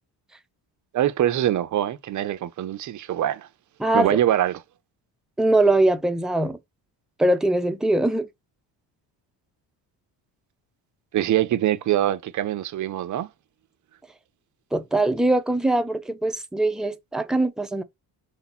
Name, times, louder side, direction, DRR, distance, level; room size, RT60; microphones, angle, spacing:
voice 1, 0.9-3.5 3.9-4.6 11.1-13.3, right 12 dB, 45° right, 0.6 m, -23 dB
voice 2, 3.8-4.2 5.4-6.6 7.2-8.3 14.7-17.8, right 2 dB, ahead, 0.5 m, -22 dB
4.4 x 2.8 x 4.1 m
cardioid pair, 115°, 42 cm